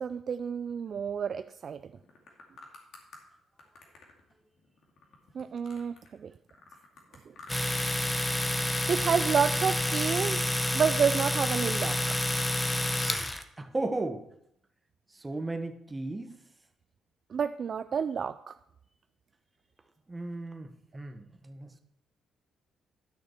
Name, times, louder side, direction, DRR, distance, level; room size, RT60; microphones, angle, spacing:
voice 1, 0.0-1.8 5.3-6.3 8.9-10.5 10.7-12.0 17.3-18.5, right 7 dB, 50° right, 11 dB, 0.3 m, -29 dB
sound 1, 1.9-3.2 3.6-6.2 6.5-7.8 8.1-8.6 9.0-10.7, left 3 dB, 70° left, 2.3 m, -53 dB
Domestic sounds home sounds, 7.5-13.4, left 1 dB, 10° left, 0.8 m, -29 dB
voice 2, 13.6-14.3 15.1-16.4 20.1-21.8, right 2 dB, 20° right, 8 dB, 1.0 m, -35 dB
12.0 x 6.4 x 4.4 m, 0.73 s
cardioid pair, 90°, 0 cm